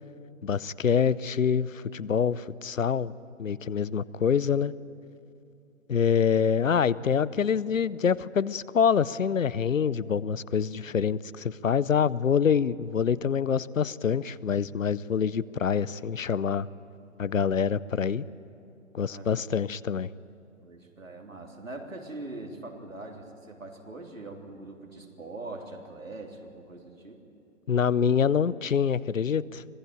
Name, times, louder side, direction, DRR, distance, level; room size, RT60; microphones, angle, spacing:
voice 1, 0.4-3.1 3.4-4.7 5.9-16.7 17.2-18.2 18.9-20.1 27.7-29.6, left 7 dB, 80° left, 19 dB, 0.7 m, -26 dB
voice 2, 19.1-19.4 20.6-27.2, right 2 dB, 90° right, 1 dB, 3.6 m, -42 dB
26.0 x 17.5 x 9.1 m, 2.7 s
figure-of-eight pair, 130°, 39 cm